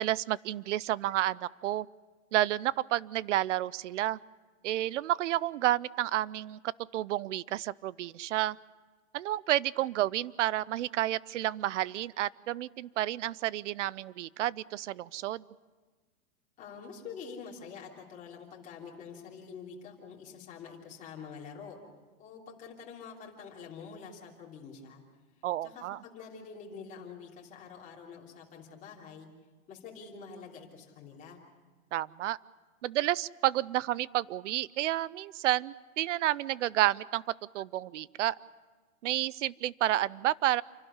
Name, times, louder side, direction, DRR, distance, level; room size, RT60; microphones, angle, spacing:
voice 1, 0.0-1.9 2.3-4.2 4.6-6.6 6.9-8.6 9.1-15.4 25.4-26.0 31.9-32.4 32.8-37.2 37.5-38.4 39.0-40.6, right 14 dB, 60° right, 22 dB, 0.6 m, -30 dB
voice 2, 16.6-21.8 22.2-25.0 25.6-29.3 29.7-31.4, left 6 dB, 20° left, -2 dB, 3.2 m, -46 dB
28.5 x 12.0 x 9.5 m, 1.3 s
supercardioid pair, 170°, 42 cm